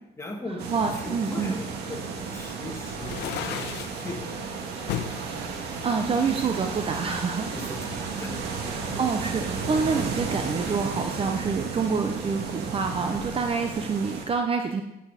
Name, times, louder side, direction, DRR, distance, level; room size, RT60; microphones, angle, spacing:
voice 1, 0.2-2.0 2.3-3.7 4.0-4.4 7.5-9.0, left 2 dB, 15° left, 0 dB, 2.2 m, -39 dB
sound 1, 0.6-14.3, right 5 dB, 75° right, 1.8 m, -33 dB
voice 2, 0.7-1.6 5.8-7.5 8.7-14.8, right 5 dB, 35° right, 5 dB, 0.8 m, -27 dB
sound 2, 2.9-4.0 4.9-5.2 5.8-6.9, left 10 dB, 85° left, 0.9 m, -34 dB
9.9 x 7.8 x 5.1 m, 0.92 s
cardioid pair, 110°, 17 cm